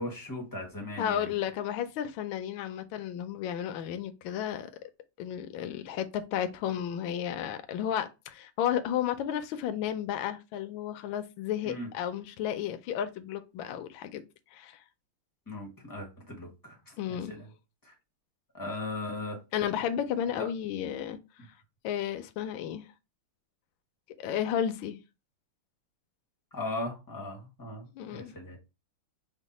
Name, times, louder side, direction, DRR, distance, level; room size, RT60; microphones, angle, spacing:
voice 1, 0.0-1.3 11.6-11.9 15.5-17.5 17.8-17.9 18.5-19.4 20.4-20.5 26.5-28.6, left 2 dB, 25° left, 0.4 m, -38 dB
voice 2, 1.0-4.7 5.2-14.2 14.5-14.8 17.0-17.3 19.5-21.2 21.8-22.8 24.2-25.0 27.9-28.3, left 10 dB, 75° left, 1.3 m, -33 dB
5.1 x 2.1 x 4.1 m
omnidirectional pair, 2.3 m